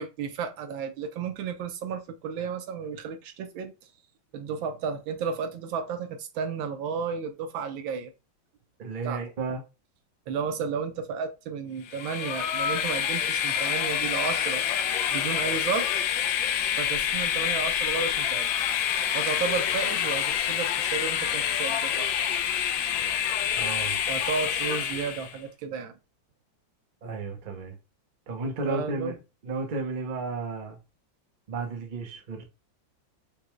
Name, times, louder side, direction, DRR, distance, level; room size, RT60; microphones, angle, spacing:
voice 1, 0.0-3.7 4.3-8.1 9.0-9.2 10.3-14.6 15.1-15.9 16.8-18.5 19.1-22.1 24.1-25.9 28.6-29.2, right 6 dB, 85° right, 1.5 m, -33 dB
voice 2, 8.8-9.6 23.5-24.0 27.0-27.7 28.3-29.1 29.4-30.8 31.5-32.4, right 3 dB, 40° right, 0.7 m, -33 dB
Train, 11.9-25.4, left 9 dB, 80° left, 1.3 m, -27 dB
5.1 x 2.2 x 3.1 m
omnidirectional pair, 2.1 m